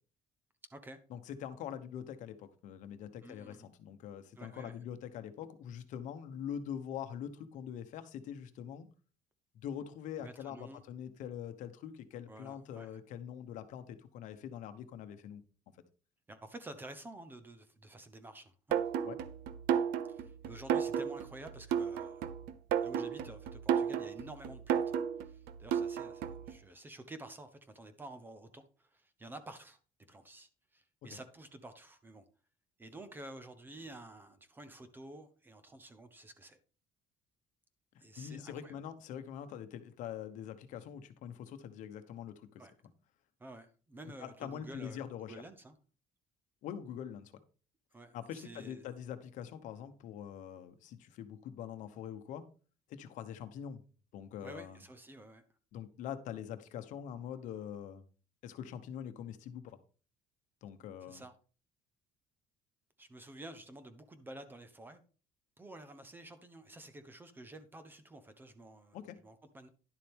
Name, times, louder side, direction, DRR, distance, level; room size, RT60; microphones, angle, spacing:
voice 1, 1.1-8.9 9.5-15.4 19.0-19.2 38.2-42.6 44.2-45.3 46.6-47.3 48.1-52.4 52.9-53.8 54.1-54.8 55.7-58.0 58.4-59.8 60.6-61.2 68.9-69.2, left 9 dB, 55° left, 1.0 m, -44 dB
voice 2, 3.2-3.7 4.4-4.8 10.2-10.8 12.3-12.9 16.3-18.8 20.1-22.3 22.8-29.8 30.1-32.2 32.8-36.6 38.0-38.8 42.6-42.7 43.4-45.8 47.9-48.9 54.4-55.4 61.1-61.3 63.0-65.0 65.6-69.0 69.2-69.7, right 1 dB, 15° right, 0.7 m, -51 dB
sound 1, 18.7-26.5, right 8 dB, 85° right, 0.8 m, -33 dB
11.0 x 7.4 x 3.5 m
cardioid pair, 175°, 15 cm